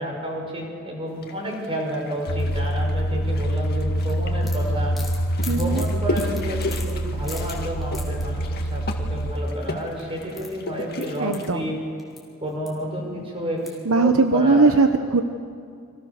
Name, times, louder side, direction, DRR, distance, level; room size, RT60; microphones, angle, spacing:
voice 1, 0.0-5.0 5.4-11.8 12.4-14.6, equal, 25° right, 0 dB, 5.6 m, -30 dB
sound 1, 1.2-11.5, left 2 dB, 45° left, 2.1 m, -35 dB
sound 2, 2.3-9.3, equal, 90° left, 1.6 m, -26 dB
sound 3, 4.0-8.3 9.8-9.9 10.1-12.2 12.5-13.0 13.6-14.0, left 2 dB, ahead, 4.6 m, -41 dB
voice 2, 5.5-5.8 11.2-11.7 13.8-15.2, right 3 dB, 70° right, 7 dB, 1.1 m, -19 dB
30.0 x 24.5 x 6.8 m, 2.3 s
head